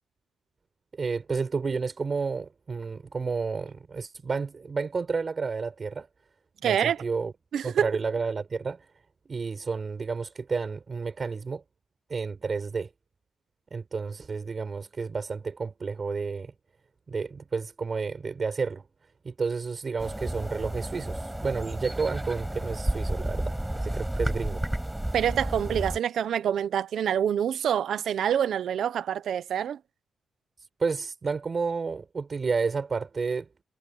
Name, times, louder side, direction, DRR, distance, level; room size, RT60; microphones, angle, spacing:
voice 1, 0.9-6.1 6.6-7.3 7.6-8.9 9.2-11.6 12.1-12.9 13.7-16.5 17.1-18.8 19.2-24.6 30.6-33.5, right 4 dB, 30° right, 4.8 m, -31 dB
voice 2, 6.6-7.0 7.5-7.9 25.1-29.8, right 9 dB, 65° right, 1.0 m, -26 dB
sound 1, 20.0-26.0, right 1 dB, 5° right, 5.3 m, -31 dB
wide cardioid pair, 170°, 0 cm